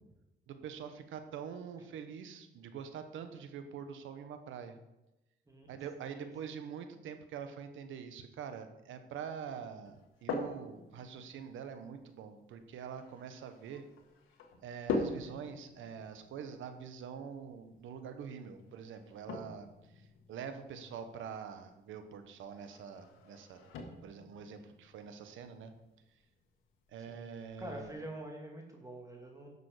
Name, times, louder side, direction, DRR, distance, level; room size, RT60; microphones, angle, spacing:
voice 1, 0.5-4.8 5.7-13.8 14.6-19.7 20.3-23.7 24.0-25.7 26.9-27.9, right 7 dB, 80° right, 8 dB, 1.2 m, -45 dB
voice 2, 6.0-6.6 27.1-27.3 27.6-29.5, right 1 dB, 15° right, 1 dB, 2.4 m, -46 dB
sound 1, 9.8-27.9, left 3 dB, 90° left, 1.5 m, -45 dB
11.0 x 6.9 x 5.0 m, 0.96 s
cardioid pair, 90°, 20 cm